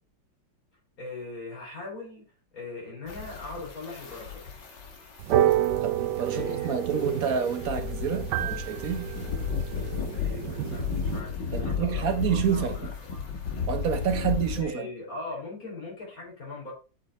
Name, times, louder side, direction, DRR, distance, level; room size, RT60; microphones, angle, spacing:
voice 1, 1.0-2.2 2.5-4.4 6.3-6.8 9.9-13.3 14.6-16.7, left 3 dB, 50° left, 4.9 m, -40 dB
sound 1, 3.1-14.6, left 6 dB, 70° left, 2.5 m, -34 dB
sound 2, 5.2-11.2, right 12 dB, 70° right, 1.2 m, -29 dB
voice 2, 5.8-9.1 11.5-12.9 13.7-14.9, right 7 dB, 55° right, 1.3 m, -28 dB
8.5 x 5.4 x 4.2 m
omnidirectional pair, 2.0 m